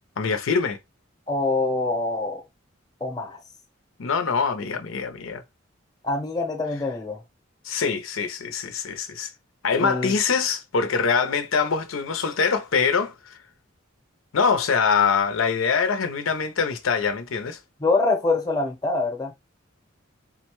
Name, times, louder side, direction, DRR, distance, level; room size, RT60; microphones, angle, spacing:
voice 1, 0.2-0.8 4.0-5.4 7.6-9.3 9.6-13.4 14.3-17.6, left 5 dB, 85° left, 0.5 m, -24 dB
voice 2, 1.3-2.4 3.0-3.4 6.0-7.2 9.7-10.1 17.8-19.3, left 3 dB, 20° left, 0.7 m, -25 dB
3.8 x 2.1 x 3.0 m
head